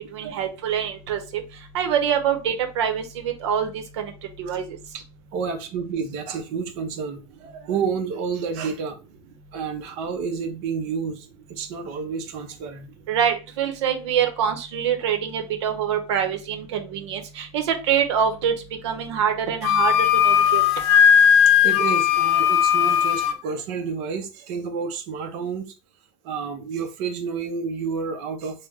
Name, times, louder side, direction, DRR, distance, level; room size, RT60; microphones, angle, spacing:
voice 1, 0.0-1.4 1.7-4.1 4.4-4.6 13.1-18.5 18.8-19.9 20.2-20.6, right 8 dB, 90° right, 0.8 m, -25 dB
voice 2, 5.3-9.0 9.5-12.9 21.5-25.7 26.2-28.7, right 5 dB, 55° right, 0.7 m, -30 dB
Wind instrument woodwind instrument, 19.6-23.4, left 9 dB, 70° left, 0.4 m, -17 dB
3.1 x 2.1 x 3.5 m
supercardioid pair, 155°, 14 cm